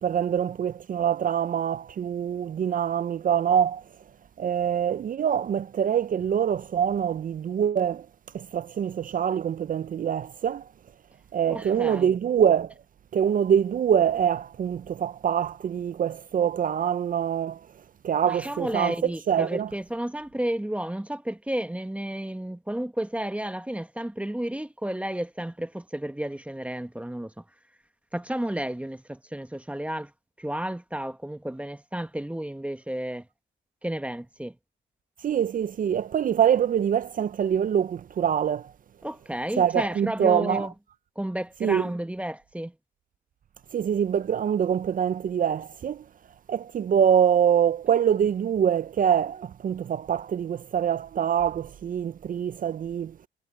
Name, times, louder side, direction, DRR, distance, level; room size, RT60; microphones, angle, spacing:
voice 1, 0.0-3.8 4.4-8.1 8.3-10.6 11.3-12.7 13.1-17.6 18.0-19.7 35.2-38.7 39.6-40.7 41.6-41.8 43.7-46.0 46.5-53.1, right 8 dB, 45° right, 0.5 m, -24 dB
voice 2, 11.5-12.1 18.2-27.4 28.1-30.1 30.4-33.2 33.8-34.5 39.0-40.7 41.1-42.7, right 1 dB, 5° right, 1.3 m, -32 dB
cardioid pair, 90°, 20 cm